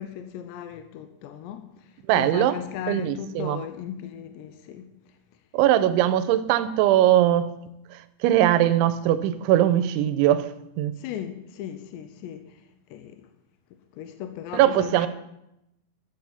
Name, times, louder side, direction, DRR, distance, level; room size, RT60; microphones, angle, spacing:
voice 1, 0.0-5.0 11.0-12.6 12.9-13.3 13.9-15.1, left 10 dB, 80° left, 2.6 m, -37 dB
voice 2, 2.1-2.6 2.9-3.6 5.5-7.5 7.9-10.5 10.8-10.9 14.5-15.1, right 12 dB, 80° right, 2.9 m, -21 dB
13.0 x 8.5 x 7.0 m
omnidirectional pair, 5.8 m